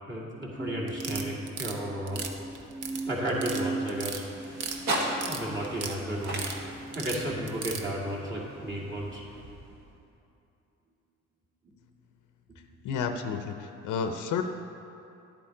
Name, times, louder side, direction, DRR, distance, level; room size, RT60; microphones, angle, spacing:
voice 1, 0.1-2.4 3.1-4.2 5.0-6.5 6.9-9.2, right 1 dB, 40° right, -5 dB, 2.4 m, -33 dB
sound 1, 0.6-8.0 8.6-9.1, right 2 dB, 15° right, 0.3 m, -40 dB
sound 2, 0.9-1.7 2.1-3.0 3.3-3.6 3.9-4.8 5.0-6.0 6.2-6.6 6.9-7.8, right 6 dB, 80° right, 0.9 m, -36 dB
sound 3, 2.0-10.1, right 1 dB, 65° right, 1.5 m, -39 dB
voice 2, 12.8-14.4, left 6 dB, 80° left, 7 dB, 0.6 m, -31 dB
10.5 x 8.4 x 3.8 m, 2.7 s
cardioid pair, 90°, 30 cm